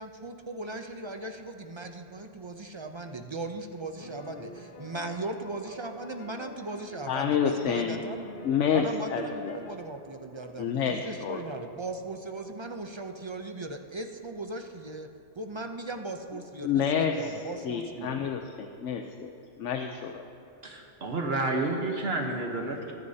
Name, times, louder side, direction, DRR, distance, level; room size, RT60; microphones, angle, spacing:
voice 1, 0.0-8.2 8.7-15.1 15.4-18.3, right 2 dB, 35° right, 5 dB, 0.4 m, -38 dB
sound 1, 4.0-9.8, left 2 dB, 55° left, 1.2 m, -46 dB
voice 2, 7.1-8.0 8.4-9.6 10.6-11.4 16.6-17.3 17.6-19.3 19.6-20.2, left 7 dB, 90° left, 5 dB, 1.0 m, -28 dB
voice 3, 20.6-22.9, right 2 dB, 60° right, 2 dB, 1.3 m, -30 dB
23.5 x 9.7 x 2.8 m, 2.9 s
omnidirectional pair, 1.2 m